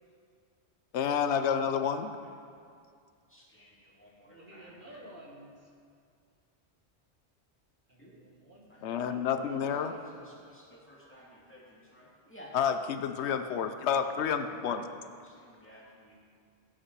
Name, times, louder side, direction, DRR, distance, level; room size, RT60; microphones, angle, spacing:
voice 1, 0.9-2.1 8.8-9.9 12.5-14.9, left 7 dB, 85° left, 9 dB, 0.9 m, -29 dB
voice 2, 3.3-4.1 4.5-5.0 8.0-8.2 8.7-12.5 14.8-16.2, equal, 10° left, -5 dB, 2.2 m, -55 dB
voice 3, 4.3-5.7 7.9-9.3 9.7-10.4, right 1 dB, 50° right, -3 dB, 1.9 m, -53 dB
14.5 x 8.2 x 4.7 m, 2.3 s
omnidirectional pair, 1.1 m